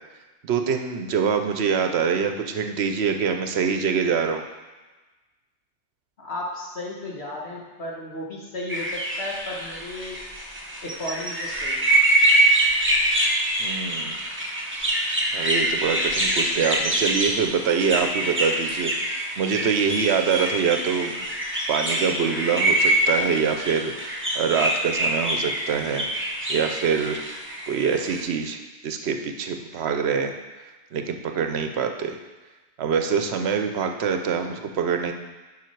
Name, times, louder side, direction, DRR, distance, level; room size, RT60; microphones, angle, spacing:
voice 1, 0.4-4.4 13.6-14.2 15.3-21.2 21.7-26.1 26.5-27.2 27.7-30.3 30.9-32.2 32.8-35.1, right 6 dB, 70° right, 6 dB, 0.9 m, -25 dB
voice 2, 6.2-10.2 10.8-11.9, left 1 dB, 65° left, -3 dB, 1.8 m, -34 dB
sound 1, 8.7-28.2, right 1 dB, 10° right, 0.9 m, -25 dB
7.4 x 5.5 x 4.5 m, 1.2 s
omnidirectional pair, 1.2 m